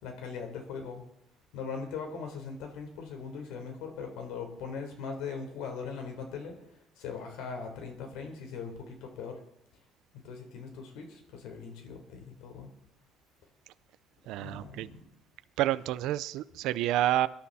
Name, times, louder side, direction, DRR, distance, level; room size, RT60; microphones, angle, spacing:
voice 1, 0.0-1.0 1.5-6.5 7.0-9.4 10.2-12.7 14.3-15.0, left 5 dB, 85° left, 4 dB, 4.0 m, -40 dB
voice 2, 14.3-14.9 15.6-17.3, right 14 dB, 80° right, 14 dB, 0.5 m, -29 dB
23.0 x 11.5 x 4.2 m, 0.78 s
cardioid pair, 150°, 0 cm